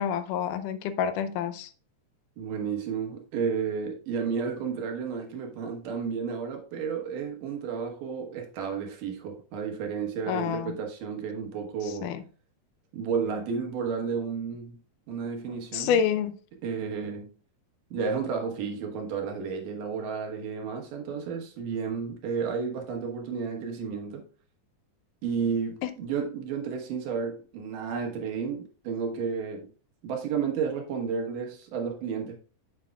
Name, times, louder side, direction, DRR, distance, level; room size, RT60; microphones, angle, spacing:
voice 1, 0.0-1.7 10.3-10.8 12.0-12.2 15.7-16.4 25.8-25.9, left 8 dB, 85° left, 2.2 m, -28 dB
voice 2, 2.4-12.1 12.9-14.8 15.1-16.0 16.6-17.3 17.9-24.3 25.2-29.7 30.0-32.4, right 6 dB, 90° right, 2.8 m, -32 dB
7.5 x 7.5 x 2.3 m
omnidirectional pair, 3.6 m